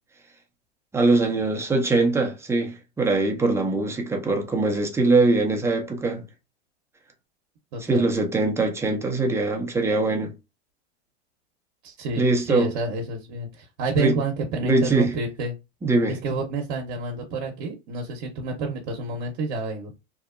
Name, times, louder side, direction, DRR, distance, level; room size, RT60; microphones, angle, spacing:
voice 1, 0.9-6.3 7.8-10.3 12.2-12.7 14.0-14.2 14.6-15.1 15.8-16.2, right 2 dB, 10° right, 0.5 m, -22 dB
voice 2, 7.7-8.1 11.8-15.5 16.1-19.9, right 3 dB, 50° right, 0.8 m, -29 dB
2.8 x 2.0 x 2.5 m
hypercardioid pair, 110°, 33 cm